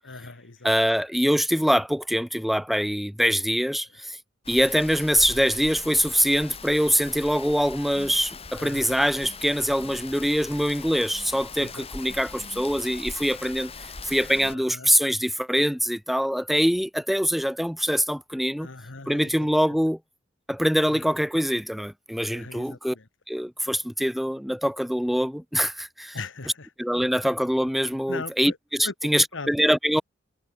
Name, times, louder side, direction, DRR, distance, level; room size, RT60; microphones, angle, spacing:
voice 1, 0.0-0.7 8.5-9.0 11.6-11.8 14.4-14.9 18.6-19.3 20.9-21.0 22.3-23.1 26.1-26.7 28.1-28.6 28.8-29.5, left 3 dB, 70° left, 1.5 m, -39 dB
voice 2, 0.6-4.2 4.5-18.7 19.1-20.0 20.5-22.9 23.3-26.2 26.8-30.0, equal, ahead, 1.0 m, -24 dB
Rain, 4.4-14.5, left 4 dB, 30° left, 3.6 m, -41 dB
head